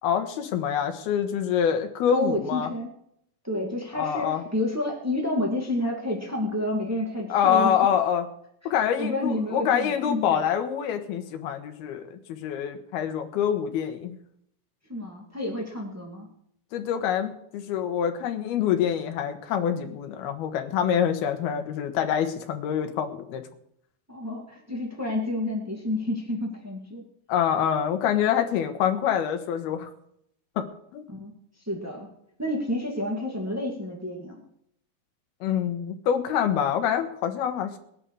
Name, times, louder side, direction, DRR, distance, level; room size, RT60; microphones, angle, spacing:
voice 1, 0.0-2.7 3.9-4.4 7.3-8.3 8.7-14.2 16.7-23.4 27.3-29.9 30.6-30.7 30.9-31.1 35.4-37.8, left 9 dB, 80° left, 6 dB, 3.3 m, -26 dB
voice 2, 2.1-2.9 3.4-7.7 9.0-10.4 14.9-16.3 24.1-27.0 31.1-31.3 31.6-32.1 32.4-34.4, left 1 dB, 10° right, -1 dB, 0.6 m, -30 dB
20.0 x 11.0 x 4.8 m, 0.73 s
omnidirectional pair, 4.5 m